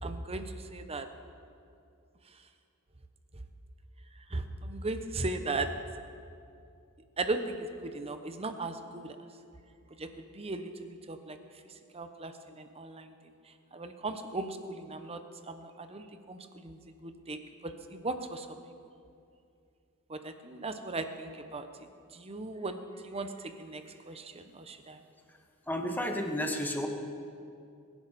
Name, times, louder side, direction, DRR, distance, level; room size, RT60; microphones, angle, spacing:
voice 1, 0.0-1.1 4.3-5.7 7.2-9.2 10.0-10.7 11.1-11.4 11.9-13.1 13.7-15.2 15.5-17.4 17.6-18.6 20.1-21.7 22.1-22.8 23.0-25.0, right 2 dB, 25° right, 8 dB, 0.8 m, -37 dB
voice 2, 25.7-26.9, equal, 10° left, 3 dB, 1.2 m, -32 dB
23.0 x 11.0 x 4.2 m, 2.5 s
head